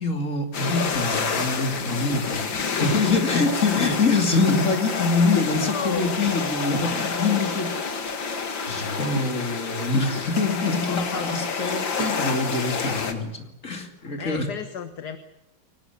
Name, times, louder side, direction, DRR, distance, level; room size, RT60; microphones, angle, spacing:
voice 1, 0.0-2.5 2.8-7.7 8.7-14.5, left 3 dB, 40° left, 4 dB, 3.2 m, -24 dB
sound 1, 0.5-13.1, left 5 dB, 85° left, 2.7 m, -28 dB
voice 2, 5.5-6.4 10.7-11.3 14.2-15.2, left 7 dB, 60° left, 9 dB, 1.8 m, -35 dB
sound 2, 9.1-11.1 12.0-12.7, right 2 dB, 25° right, 1.5 m, -41 dB
23.5 x 19.0 x 9.5 m, 0.84 s
omnidirectional pair, 2.0 m